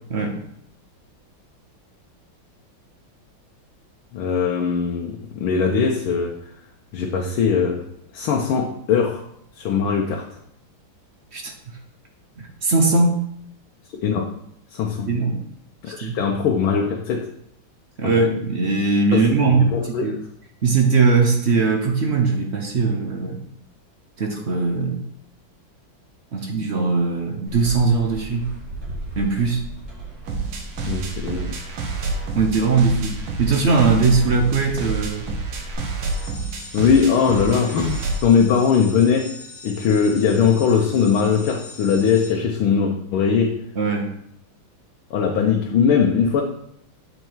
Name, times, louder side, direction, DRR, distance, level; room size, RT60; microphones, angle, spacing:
voice 1, 4.1-6.4 6.9-7.8 8.1-9.3 9.5-10.3 14.0-14.3 14.7-15.1 15.8-17.3 18.0-18.1 19.1-19.3 19.7-20.1 30.9-31.5 36.7-39.3 39.6-43.6 45.1-46.4, left 6 dB, 80° left, 0 dB, 1.6 m, -20 dB
voice 2, 12.6-13.2 15.1-15.4 16.0-16.2 18.0-19.7 20.0-20.1 20.6-23.4 24.2-25.0 26.3-28.5 29.2-29.6 32.4-35.3 43.8-44.1, right 4 dB, 60° right, 2 dB, 0.7 m, -20 dB
sound 1, 27.5-35.7, right 2 dB, 35° right, 2.1 m, -35 dB
sound 2, 30.3-38.3, right 4 dB, 75° right, 1.8 m, -29 dB
sound 3, 36.0-42.3, left 3 dB, 30° left, 0.9 m, -41 dB
8.0 x 4.5 x 4.5 m, 0.72 s
omnidirectional pair, 2.3 m